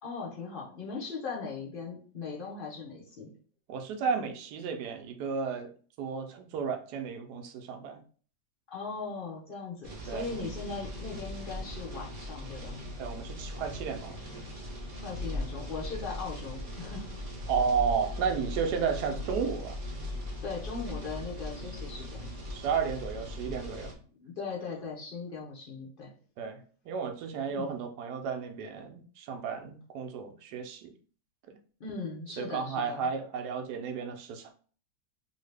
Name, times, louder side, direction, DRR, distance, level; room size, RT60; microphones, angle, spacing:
voice 1, 0.0-3.3 8.7-12.8 15.0-17.2 20.4-22.3 24.1-26.1 27.5-27.8 31.8-33.1, left 4 dB, 60° left, -3 dB, 0.5 m, -39 dB
voice 2, 3.7-5.7 6.0-8.0 10.1-10.3 13.0-14.2 17.5-19.8 22.5-23.9 26.4-30.9 32.4-34.5, right 6 dB, 75° right, 5 dB, 1.1 m, -33 dB
sound 1, 9.8-23.9, left 1 dB, 40° right, 0.5 m, -39 dB
2.8 x 2.7 x 3.2 m, 0.43 s
omnidirectional pair, 1.8 m